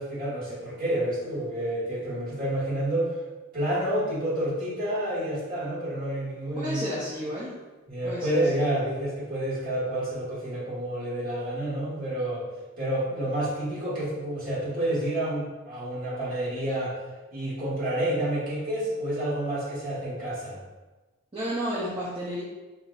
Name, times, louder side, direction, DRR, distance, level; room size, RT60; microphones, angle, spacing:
voice 1, 0.0-3.1 3.5-6.9 7.9-12.5 12.8-17.0 17.3-20.6, right 1 dB, 40° right, -8 dB, 1.5 m, -29 dB
voice 2, 6.5-7.5 8.0-8.6 21.3-22.4, equal, 25° right, -8 dB, 0.6 m, -32 dB
5.9 x 2.6 x 2.4 m, 1.2 s
head